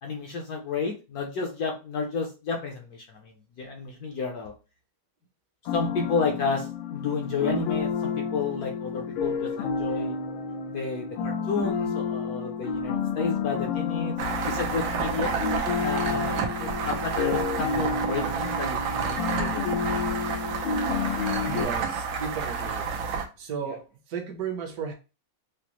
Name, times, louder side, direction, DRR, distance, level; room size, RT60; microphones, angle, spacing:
voice 1, 0.0-4.5 5.7-10.2 10.7-14.1 14.5-15.3 15.8-19.6 23.7-23.8, left 4 dB, 60° left, 2 dB, 1.0 m, -31 dB
sound 1, 5.7-21.6, left 6 dB, 90° left, 1.5 m, -30 dB
sound 2, 14.2-23.3, right 5 dB, 80° right, 1.5 m, -30 dB
voice 2, 21.4-22.8 23.4-24.9, right 6 dB, 60° right, 4 dB, 1.2 m, -34 dB
5.1 x 2.1 x 2.9 m, 0.30 s
omnidirectional pair, 2.2 m